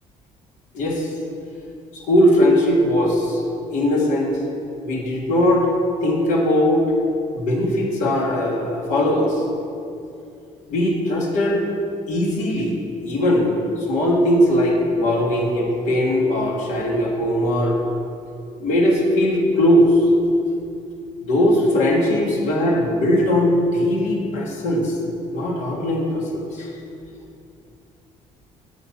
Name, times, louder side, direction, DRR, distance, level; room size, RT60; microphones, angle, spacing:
voice 1, 0.7-1.1 1.9-3.4 3.7-4.4 4.8-5.7 6.0-7.0 7.3-9.4 10.7-11.6 12.1-12.8 13.0-17.8 18.6-20.0 21.2-25.0 25.3-26.7, left 1 dB, 70° left, -1 dB, 1.5 m, -19 dB
7.9 x 5.8 x 5.9 m, 2.5 s
cardioid pair, 175°, 13 cm